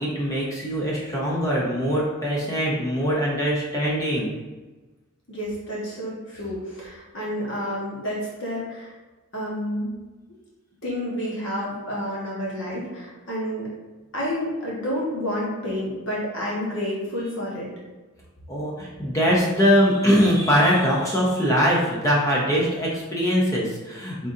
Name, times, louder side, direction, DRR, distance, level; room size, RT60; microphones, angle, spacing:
voice 1, 0.0-4.3 18.5-24.3, equal, 15° left, -5 dB, 0.6 m, -22 dB
voice 2, 5.3-8.9 9.3-9.9 10.8-13.7 14.1-17.7, equal, 55° left, -5 dB, 1.3 m, -29 dB
3.9 x 3.6 x 2.6 m, 1.2 s
head